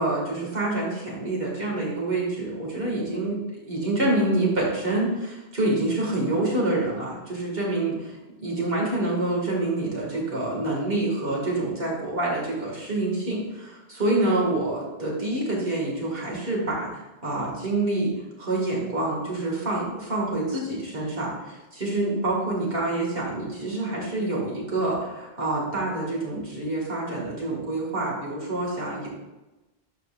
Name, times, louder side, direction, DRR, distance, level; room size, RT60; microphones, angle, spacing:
voice 1, 0.0-3.4 3.7-8.1 8.4-18.1 18.4-29.1, right 2 dB, 60° right, -3 dB, 2.3 m, -27 dB
12.5 x 4.6 x 2.5 m, 1.1 s
omnidirectional pair, 1.1 m